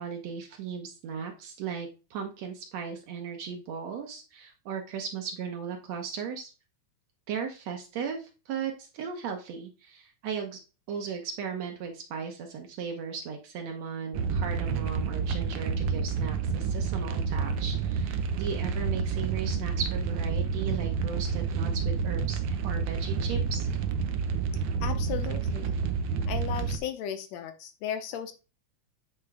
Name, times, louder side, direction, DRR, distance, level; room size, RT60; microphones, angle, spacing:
voice 1, 0.0-6.5 7.3-10.6 10.9-23.7, right 6 dB, 70° right, 3 dB, 2.1 m, -36 dB
sound 1, 14.1-26.8, right 5 dB, 85° right, 1.1 m, -29 dB
voice 2, 24.8-25.8 26.3-28.3, left 9 dB, 75° left, 8 dB, 1.8 m, -35 dB
8.8 x 3.5 x 4.8 m, 0.32 s
omnidirectional pair, 3.4 m